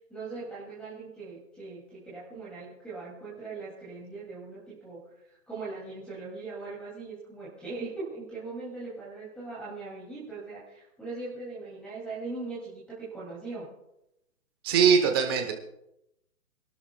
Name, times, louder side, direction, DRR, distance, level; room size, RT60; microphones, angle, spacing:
voice 1, 0.1-5.0 5.3-13.7, right 3 dB, ahead, -6 dB, 2.5 m, -40 dB
voice 2, 14.6-15.5, right 6 dB, 15° right, 4 dB, 0.9 m, -21 dB
26.0 x 12.0 x 2.3 m, 0.84 s
hypercardioid pair, 160°, 43 cm